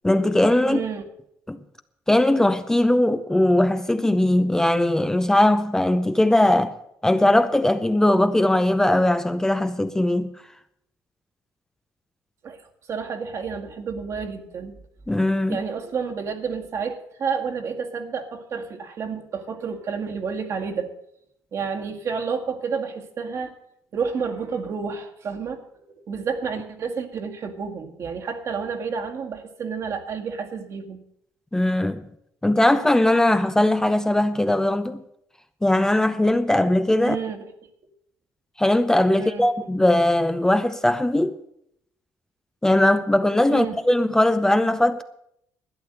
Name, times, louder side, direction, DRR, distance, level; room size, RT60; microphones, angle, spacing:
voice 1, 0.0-0.8 1.5-1.6 2.1-6.8 7.0-10.3 15.1-15.6 31.5-32.0 32.4-35.0 35.6-37.2 38.6-41.3 42.6-45.0, left 1 dB, 10° left, 0.7 m, -20 dB
voice 2, 0.6-1.1 12.4-12.6 12.9-14.7 15.5-20.9 21.5-23.5 23.9-31.0 37.0-37.4 39.1-39.5 43.5-43.8, right 5 dB, 55° right, 1.9 m, -30 dB
12.0 x 9.5 x 7.8 m
cardioid pair, 90°, 6 cm